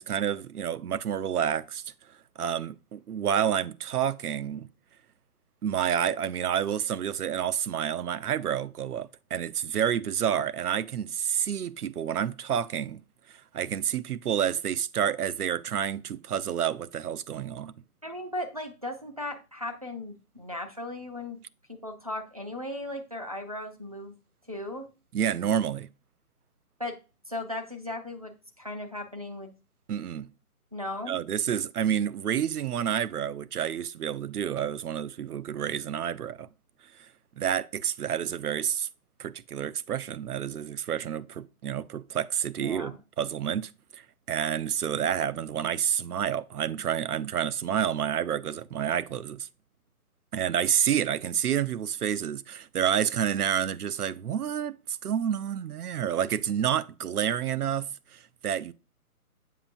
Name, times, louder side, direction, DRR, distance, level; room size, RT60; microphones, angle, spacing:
voice 1, 0.0-1.8 2.4-4.7 5.6-13.0 13.5-17.7 25.1-25.9 29.9-30.3 31.1-36.5 37.4-38.9 39.2-44.0 44.3-49.5 50.3-58.7, right 9 dB, 85° right, 0.6 m, -29 dB
voice 2, 18.0-21.4 21.7-24.1 24.5-24.9 26.8-27.0 27.3-29.5 30.7-31.2 42.6-43.0, left 1 dB, 25° right, 0.5 m, -37 dB
7.5 x 5.6 x 2.5 m
hypercardioid pair, 165°, 45 cm